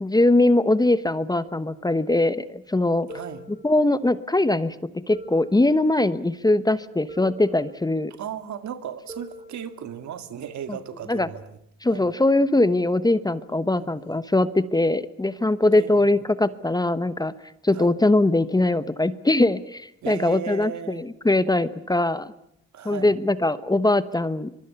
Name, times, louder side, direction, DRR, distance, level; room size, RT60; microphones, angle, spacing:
voice 1, 0.0-3.1 3.6-4.7 5.1-8.1 11.1-11.3 11.8-17.3 17.6-22.3 22.8-24.5, left 2 dB, 15° left, 1.0 m, -21 dB
sound 1, 3.1-4.3 5.1-6.3 7.1-8.3 9.1-10.3, right 1 dB, 15° right, 3.9 m, -45 dB
voice 2, 3.1-3.4 8.2-11.6 11.9-12.2 13.8-14.2 15.7-16.1 17.7-17.9 20.0-21.0 22.7-23.2, right 9 dB, 70° right, 2.1 m, -36 dB
25.0 x 23.0 x 7.0 m
cardioid pair, 90°, 30 cm